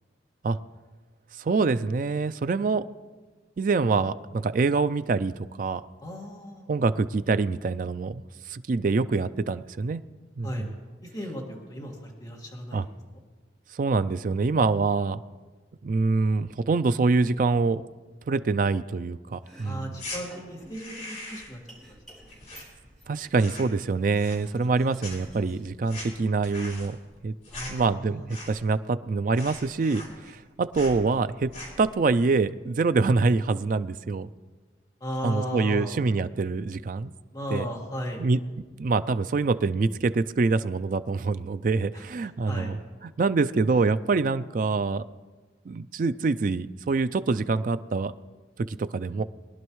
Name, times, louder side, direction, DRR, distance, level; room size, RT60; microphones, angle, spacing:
voice 1, 1.4-2.8 3.6-5.3 5.6-5.8 6.7-10.0 10.4-10.7 12.7-12.9 13.7-15.2 15.8-17.8 18.3-20.0 23.1-27.0 27.2-27.3 27.7-31.5 31.8-34.3 35.2-37.1 37.5-37.7 38.2-38.4 38.8-42.8 43.2-45.0 45.7-48.1 48.6-49.2, right 4 dB, 45° right, 13 dB, 0.3 m, -25 dB
voice 2, 6.0-6.7 10.4-10.7 11.0-12.9 19.6-21.6 21.9-22.0 27.5-28.2 35.0-36.0 37.3-38.3 41.9-42.0 42.5-42.8, equal, 20° left, -3 dB, 1.9 m, -35 dB
Domestic sounds home sounds, 19.3-27.5, right 1 dB, ahead, 4.8 m, -55 dB
sound 1, 19.9-20.2 20.6-21.6 21.9-23.1 23.3-23.8 24.1-24.7 25.0-28.8 29.0-29.1 29.3-30.4 30.7-31.0 31.4-31.9, left 1 dB, 45° left, 4.0 m, -41 dB
22.5 x 11.0 x 3.1 m, 1.3 s
head